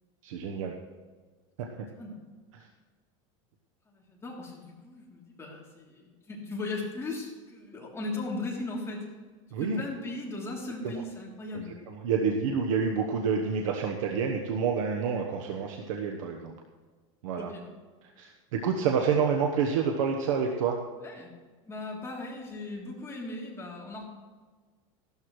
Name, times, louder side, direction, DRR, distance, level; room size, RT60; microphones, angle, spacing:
voice 1, 0.2-0.7 1.6-1.7 9.5-9.8 10.8-10.9 11.5-16.5 17.2-17.5 18.0-20.8, right 6 dB, 90° right, 2 dB, 1.1 m, -28 dB
voice 2, 3.9-9.0 9.6-11.7 17.4-17.7 21.0-21.3 21.6-24.1, left 2 dB, 15° left, -3 dB, 3.1 m, -38 dB
15.0 x 12.5 x 3.2 m, 1.4 s
supercardioid pair, 135°, 16 cm